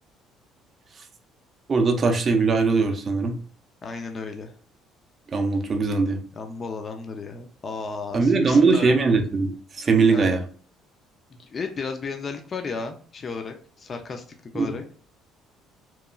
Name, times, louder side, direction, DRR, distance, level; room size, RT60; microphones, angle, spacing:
voice 1, 1.7-3.4 5.3-6.2 8.1-10.4 14.6-14.8, right 4 dB, 35° right, 4 dB, 0.4 m, -20 dB
voice 2, 3.8-4.5 6.4-9.0 10.1-10.2 11.3-14.2 14.5-14.8, left 4 dB, 35° left, 5 dB, 0.4 m, -34 dB
2.9 x 2.3 x 2.3 m, 0.43 s
cardioid pair, 110°, 0 cm